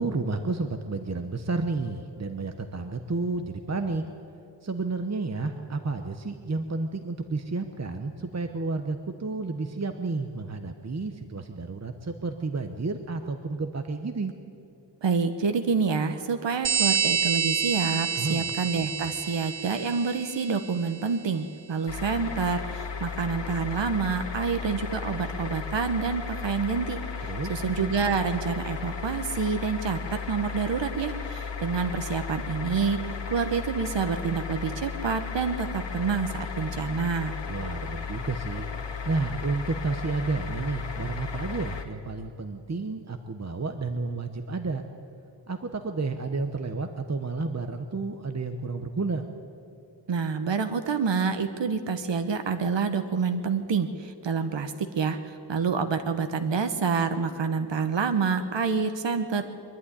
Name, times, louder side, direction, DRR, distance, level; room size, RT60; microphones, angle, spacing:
voice 1, 0.0-4.1 4.6-14.3 18.2-18.5 27.3-27.6 37.5-38.7 39.0-44.8 45.5-49.2, right 3 dB, 35° right, 6 dB, 1.0 m, -31 dB
voice 2, 15.0-27.0 27.5-37.4 50.1-59.5, right 5 dB, 80° right, 7 dB, 1.1 m, -28 dB
sound 1, 16.6-20.9, right 6 dB, 65° right, 0.8 m, -28 dB
sound 2, 21.9-41.8, left 6 dB, 80° left, 1.8 m, -35 dB
23.5 x 11.5 x 9.9 m, 2.6 s
wide cardioid pair, 95°, 43 cm